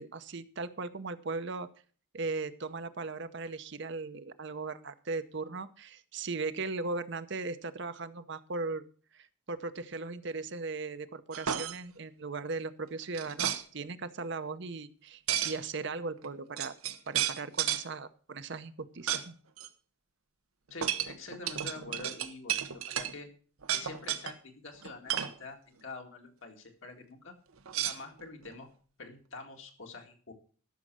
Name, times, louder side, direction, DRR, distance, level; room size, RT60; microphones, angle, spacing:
voice 1, 0.0-1.7 2.1-8.8 9.1-16.8 17.1-19.4, right 3 dB, 55° right, 11 dB, 0.8 m, -38 dB
sound 1, 11.3-11.8 13.1-13.6 15.3-15.6 16.2-16.3 16.6-17.8 19.1-19.3 19.6-19.7 20.8-23.1 23.6-24.3 24.8-25.3 27.7-28.5, right 10 dB, 90° right, 0.9 m, -32 dB
voice 2, 20.7-23.3 23.7-27.3 27.8-28.7 29.0-30.3, left 3 dB, 65° left, 3 dB, 2.1 m, -46 dB
13.0 x 6.5 x 6.1 m, 0.43 s
head